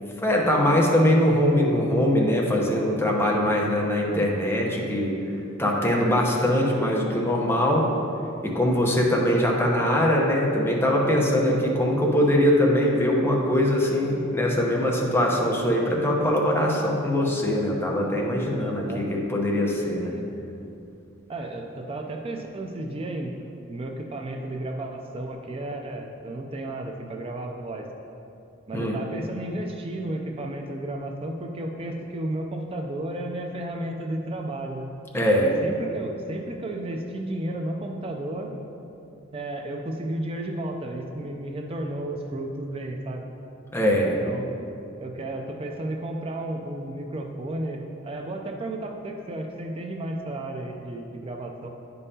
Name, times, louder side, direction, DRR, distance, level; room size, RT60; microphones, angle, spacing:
voice 1, 0.2-5.2 5.6-7.9 8.4-20.1 28.7-29.0 35.1-35.6 43.7-44.2, left 1 dB, 10° left, -2 dB, 0.8 m, -22 dB
voice 2, 18.6-19.1 20.0-20.2 21.3-23.3 23.7-27.9 28.7-34.9 35.4-38.5 39.3-43.3 44.2-44.5 45.0-51.7, right 1 dB, 30° right, 2 dB, 0.4 m, -33 dB
9.3 x 5.4 x 2.8 m, 2.7 s
head